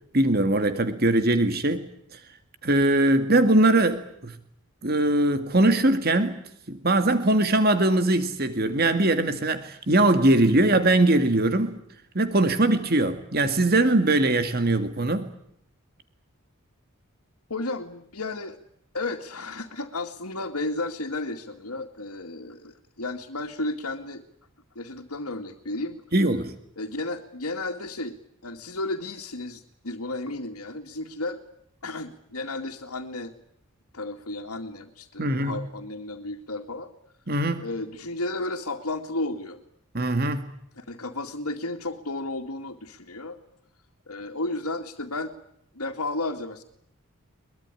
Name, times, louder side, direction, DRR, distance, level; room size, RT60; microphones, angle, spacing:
voice 1, 0.1-1.9 2.1-2.2 2.6-4.4 4.8-6.4 6.7-11.7 12.1-15.3 26.1-26.5 35.2-35.6 37.3-37.6 39.9-40.5, right 2 dB, 45° right, 10 dB, 2.0 m, -21 dB
voice 2, 17.5-18.6 18.9-24.2 24.8-26.0 26.8-28.2 28.4-31.4 31.8-33.3 33.9-36.9 37.6-39.6 40.8-43.4 44.1-45.3 45.7-46.6, left 2 dB, 85° left, 1 dB, 2.3 m, -33 dB
23.0 x 22.5 x 9.9 m, 0.73 s
head